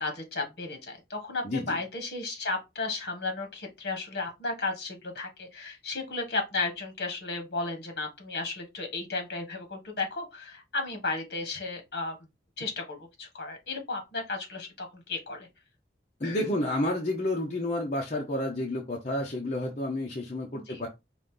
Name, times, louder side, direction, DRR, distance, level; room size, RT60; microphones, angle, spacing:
voice 1, 0.0-12.2 12.6-15.5 16.2-16.5 20.5-20.8, left 3 dB, 60° left, 1.5 m, -34 dB
voice 2, 1.4-1.8 16.2-20.9, left 1 dB, 40° left, 0.8 m, -30 dB
5.2 x 2.6 x 3.7 m
head